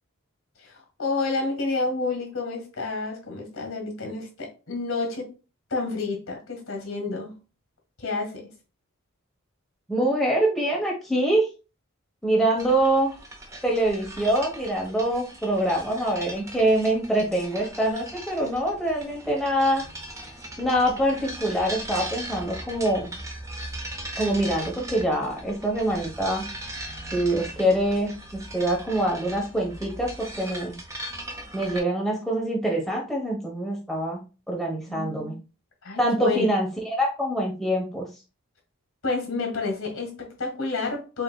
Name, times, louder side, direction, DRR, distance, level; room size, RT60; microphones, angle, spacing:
voice 1, 0.6-5.3 5.7-7.4 8.0-8.5 34.9-35.3 35.8-36.5 39.0-41.2, left 3 dB, 70° left, 1.8 m, -30 dB
voice 2, 9.9-11.5 12.2-13.1 13.6-19.8 20.6-23.1 24.2-26.4 27.1-28.1 28.5-30.7 31.5-34.2 34.5-35.4 36.0-38.1, right 1 dB, ahead, 0.9 m, -24 dB
sound 1, 12.6-31.8, right 1 dB, 15° right, 0.5 m, -39 dB
6.5 x 2.8 x 2.3 m
head